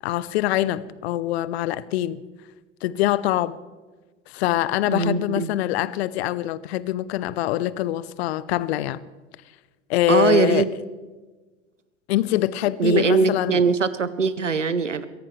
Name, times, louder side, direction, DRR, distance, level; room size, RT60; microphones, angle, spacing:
voice 1, 0.0-2.2 2.8-3.6 4.3-9.0 9.9-10.7 12.1-13.6, left 14 dB, 60° left, 19 dB, 0.7 m, -24 dB
voice 2, 4.8-5.5 10.1-10.7 12.8-15.0, right 5 dB, 90° right, 15 dB, 0.8 m, -21 dB
23.0 x 16.5 x 3.2 m, 1.3 s
figure-of-eight pair, 70°, 36 cm